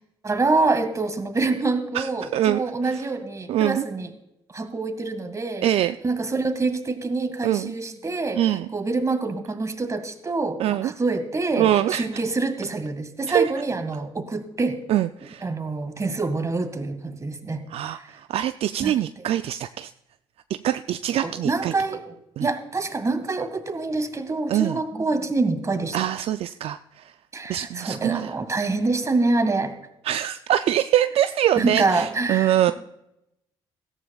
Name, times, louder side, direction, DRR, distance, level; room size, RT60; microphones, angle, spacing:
voice 1, 0.2-4.1 4.5-5.7 6.0-8.4 8.7-14.8 15.4-17.6 18.8-19.3 21.2-22.0 22.4-26.0 27.3-29.8 31.6-32.7, right 3 dB, 30° right, 9 dB, 1.8 m, -26 dB
voice 2, 1.9-3.1 3.5-3.8 5.6-6.0 7.4-7.7 8.3-8.7 10.6-10.9 11.6-12.0 13.3-13.5 14.9-15.5 17.7-19.9 20.5-21.7 22.4-22.5 24.5-24.8 25.9-27.1 27.5-28.3 30.0-32.7, right 12 dB, 65° right, 10 dB, 0.4 m, -24 dB
17.0 x 13.0 x 2.4 m, 0.86 s
supercardioid pair, 65°, 11 cm